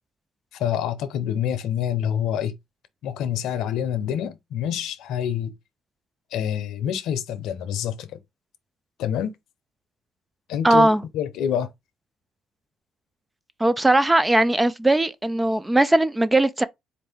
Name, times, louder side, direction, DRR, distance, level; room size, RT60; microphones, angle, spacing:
voice 1, 0.5-2.5 3.0-5.5 6.3-8.2 9.0-9.3 10.5-10.9 11.1-11.7, left 9 dB, 80° left, 0.7 m, -26 dB
voice 2, 10.6-11.0 13.6-16.6, right 1 dB, 15° right, 0.4 m, -19 dB
4.2 x 2.6 x 3.5 m
supercardioid pair, 75°, 0 cm